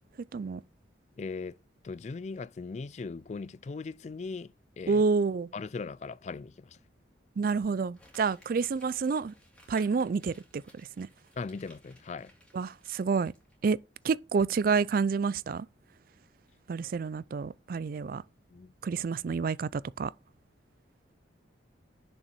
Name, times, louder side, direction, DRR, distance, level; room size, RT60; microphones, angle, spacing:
voice 1, 1.2-1.6 1.8-5.0 5.5-6.8 11.4-12.3 18.5-18.7, left 4 dB, 35° left, 0.3 m, -39 dB
voice 2, 4.9-5.5 7.4-9.3 9.7-11.1 12.5-13.3 13.6-13.8 14.0-15.7 16.7-18.2 18.8-20.1, right 5 dB, 50° right, 0.3 m, -29 dB
Crumpling crinkling, 7.9-13.7 14.0-14.1, equal, 5° left, 2.5 m, -60 dB
6.8 x 5.5 x 4.4 m
head